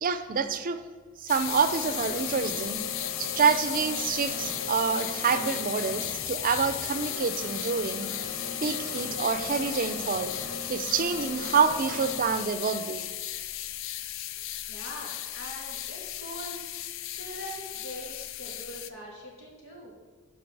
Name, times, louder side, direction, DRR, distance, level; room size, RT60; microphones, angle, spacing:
voice 1, 0.0-0.8 1.2-2.8 3.2-8.1 8.6-10.3 10.7-13.0, right 5 dB, 45° right, 11 dB, 0.5 m, -27 dB
sound 1, 1.3-18.9, left 13 dB, 70° left, 0.4 m, -35 dB
sound 2, 1.4-12.2, left 1 dB, 40° left, 2.7 m, -40 dB
voice 2, 14.3-16.7 17.1-19.9, equal, 85° left, -3 dB, 2.6 m, -43 dB
12.5 x 4.9 x 4.7 m, 1.5 s
head